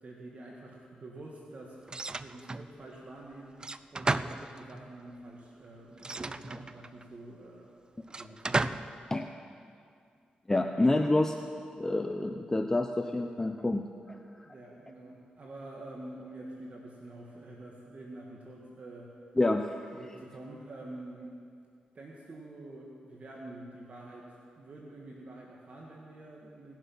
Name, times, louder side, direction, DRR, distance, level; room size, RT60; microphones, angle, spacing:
voice 1, 0.0-1.8 2.1-3.6 3.9-7.7 8.2-8.8 14.4-19.2 19.9-21.3 22.0-26.8, right 2 dB, 50° right, -2 dB, 1.7 m, -47 dB
sound 1, 1.9-2.7 3.6-4.9 6.0-7.0 8.1-9.0, right 3 dB, 30° right, 0.4 m, -34 dB
voice 2, 10.5-11.4 11.8-14.5 19.4-19.7, left 2 dB, 20° left, 5 dB, 0.6 m, -28 dB
18.5 x 7.4 x 5.6 m, 2.3 s
cardioid pair, 70°, 3 cm